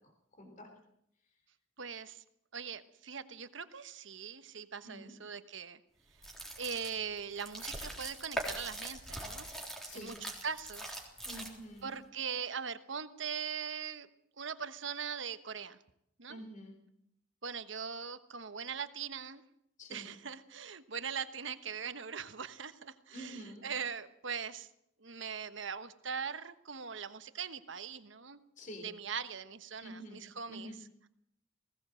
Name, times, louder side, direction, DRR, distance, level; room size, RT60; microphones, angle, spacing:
voice 1, 0.4-0.7 4.8-5.1 9.8-10.1 11.2-12.0 16.3-16.7 19.8-20.1 23.1-23.6 28.6-28.9 29.8-30.2 30.5-30.8, equal, 40° left, 4 dB, 3.7 m, -47 dB
voice 2, 1.8-2.2 2.5-5.8 6.6-9.5 9.9-11.0 11.8-14.1 14.4-15.8 16.2-16.4 17.4-19.4 19.9-24.7 25.0-28.4 28.8-30.7, right 6 dB, 65° right, 11 dB, 1.2 m, -41 dB
sound 1, 6.1-11.8, right 1 dB, ahead, 3.7 m, -42 dB
20.0 x 17.0 x 7.8 m, 0.75 s
head